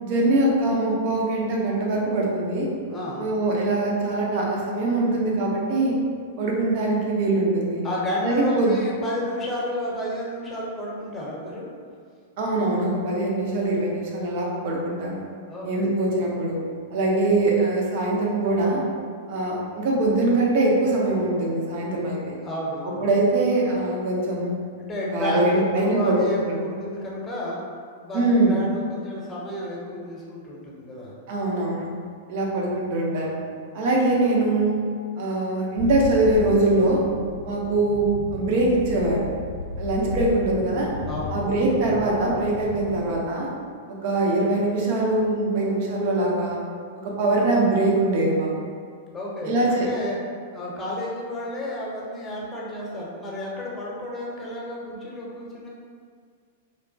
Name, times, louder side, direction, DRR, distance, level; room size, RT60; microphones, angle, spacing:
voice 1, 0.0-2.7 3.2-6.0 6.4-7.8 8.2-8.7 12.4-15.2 15.6-16.6 16.9-18.8 19.3-22.3 22.8-24.5 25.1-26.2 26.5-26.6 28.1-28.6 31.3-31.9 32.3-33.4 33.7-34.8 35.2-37.0 37.4-39.3 39.8-40.9 41.3-43.5 43.9-46.6 47.0-48.5 49.4-49.9, right 2 dB, 55° right, -3 dB, 0.6 m, -22 dB
voice 2, 2.9-3.2 7.8-11.7 15.5-15.9 22.4-23.0 24.8-27.6 28.0-31.1 41.1-41.4 49.1-50.2 50.5-55.7, left 1 dB, 20° left, -4 dB, 0.8 m, -31 dB
sound 1, 35.8-43.1, left 3 dB, 70° left, 0.3 m, -34 dB
3.1 x 2.1 x 2.6 m, 2.1 s
hypercardioid pair, 105°, 0 cm